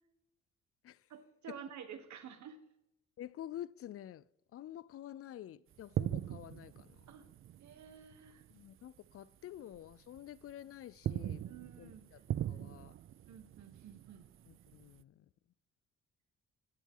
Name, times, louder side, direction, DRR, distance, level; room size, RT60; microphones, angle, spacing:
voice 1, 1.1-2.6 7.1-7.2 7.6-8.4 11.4-12.0 12.5-12.9 13.3-14.5, right 8 dB, 70° right, 1.5 m, -51 dB
voice 2, 3.2-4.2 4.5-7.1 8.5-11.4 11.8-12.2 12.5-12.9 14.5-15.3, left 12 dB, 50° left, 0.4 m, -49 dB
sound 1, 5.7-8.7 9.0-9.2 9.7-10.5 10.8-15.0, right 11 dB, 45° right, 0.4 m, -41 dB
15.5 x 7.2 x 3.8 m
cardioid pair, 90°, 30 cm